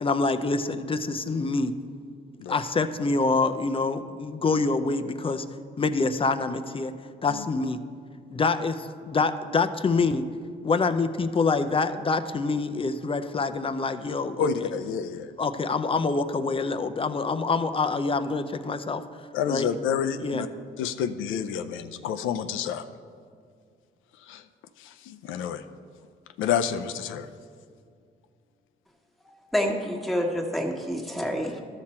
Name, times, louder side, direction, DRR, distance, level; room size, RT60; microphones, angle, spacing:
voice 1, 0.0-1.7 2.5-5.4 5.8-6.9 7.2-7.8 8.3-10.2 10.6-14.7 15.4-19.0 19.5-19.7 20.2-20.4, left 4 dB, 25° left, 9 dB, 0.5 m, -26 dB
voice 2, 14.4-15.3 19.3-20.5 20.8-22.8 24.3-24.4 24.8-25.6 26.4-27.3, left 7 dB, 85° left, 9 dB, 0.5 m, -29 dB
voice 3, 29.2-31.6, equal, ahead, 0 dB, 1.3 m, -28 dB
13.0 x 6.0 x 4.3 m, 2.2 s
cardioid pair, 90°, 20 cm